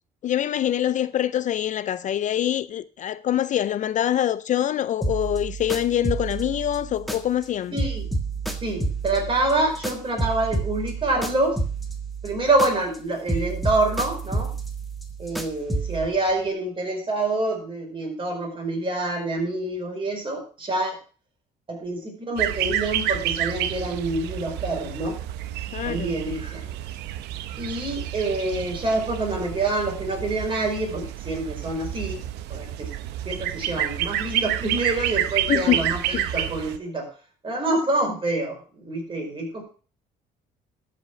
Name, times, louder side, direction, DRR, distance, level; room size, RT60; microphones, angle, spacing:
voice 1, 0.2-7.7 25.7-26.2 35.5-36.2, left 11 dB, 50° left, 0.4 m, -25 dB
sound 1, 5.0-7.5 7.8-13.0 13.3-16.1, right 3 dB, ahead, 1.6 m, -30 dB
voice 2, 7.7-8.1 8.6-11.6 12.2-14.5 15.2-21.0 21.7-25.2 25.8-26.7 27.6-32.2 32.5-32.9 33.2-37.1 37.4-39.6, right 2 dB, 30° right, 5.1 m, -26 dB
sound 2, 22.4-36.8, right 12 dB, 90° right, 0.8 m, -29 dB
12.5 x 5.8 x 6.1 m
cardioid pair, 110°, 17 cm